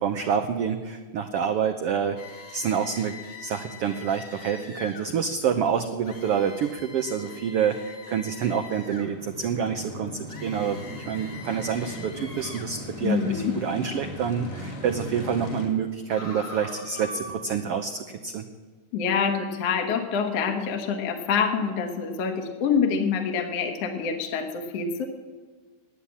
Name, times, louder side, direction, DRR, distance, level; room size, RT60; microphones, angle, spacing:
voice 1, 0.0-2.2 2.5-18.4, right 7 dB, 75° right, 6 dB, 1.3 m, -27 dB
sound 1, 2.2-5.1 6.0-9.1 10.3-12.7 16.1-17.3, left 3 dB, 35° left, 1.5 m, -43 dB
sound 2, 9.0-15.7, left 1 dB, 80° left, 4.5 m, -38 dB
voice 2, 13.0-13.5 18.9-25.1, left 6 dB, 60° left, 4 dB, 2.1 m, -26 dB
15.0 x 9.9 x 8.6 m, 1.4 s
omnidirectional pair, 3.6 m